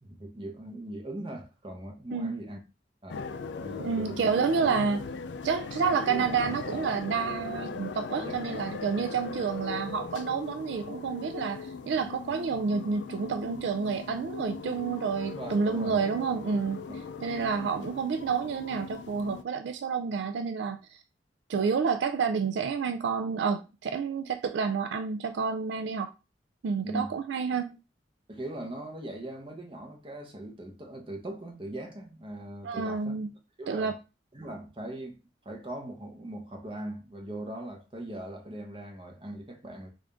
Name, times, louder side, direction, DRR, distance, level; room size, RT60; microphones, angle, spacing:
voice 1, 0.0-2.6 3.0-3.2 3.6-4.2 8.2-9.1 15.3-16.0 26.8-27.1 28.3-33.2 33.6-34.0 34.3-35.2 35.4-39.9, right 1 dB, 30° right, 0.9 m, -40 dB
sound 1, 3.1-19.4, left 4 dB, 85° left, 0.4 m, -39 dB
voice 2, 3.8-5.0 5.4-16.8 17.2-21.0 21.5-26.1 26.6-27.8 32.6-33.3 33.7-33.9, right 5 dB, 80° right, 0.3 m, -29 dB
3.6 x 2.6 x 3.4 m
head